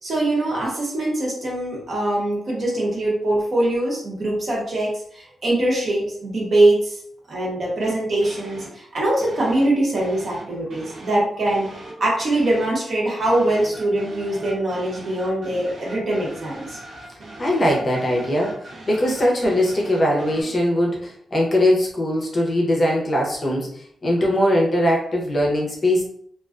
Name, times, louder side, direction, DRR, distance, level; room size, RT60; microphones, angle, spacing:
voice 1, 0.0-7.0 7.3-16.8, right 1 dB, 45° right, -4 dB, 0.9 m, -22 dB
sound 1, 7.8-8.8 9.2-12.8 13.2-20.4, right 2 dB, 85° right, 0.7 m, -41 dB
voice 2, 17.4-26.0, left 1 dB, 30° left, -2 dB, 0.6 m, -21 dB
2.3 x 2.2 x 2.4 m, 0.63 s
wide cardioid pair, 155°, 0 cm